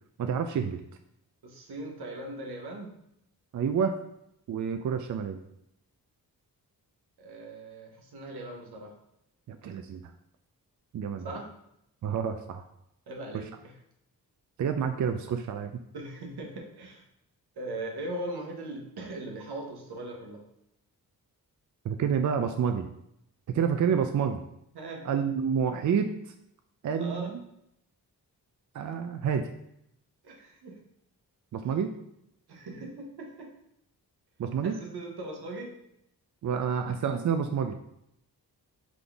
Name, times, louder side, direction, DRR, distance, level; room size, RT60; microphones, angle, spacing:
voice 1, 0.2-0.8 3.5-4.0 4.5-5.4 9.5-10.0 10.9-11.3 12.0-12.6 13.3-13.4 14.6-15.8 21.8-22.9 23.5-24.4 25.0-26.1 26.8-27.4 28.7-29.5 31.5-32.0 34.4-34.8 36.4-37.8, right 7 dB, 50° right, 7 dB, 0.4 m, -28 dB
voice 2, 1.4-2.9 7.2-8.9 11.2-11.4 13.1-13.5 15.9-17.0 17.6-20.4 24.7-25.1 26.9-27.3 30.2-30.8 32.5-33.5 34.6-35.8, right 1 dB, 85° right, 1 dB, 1.0 m, -39 dB
3.8 x 3.7 x 3.4 m, 0.78 s
cardioid pair, 65°, 38 cm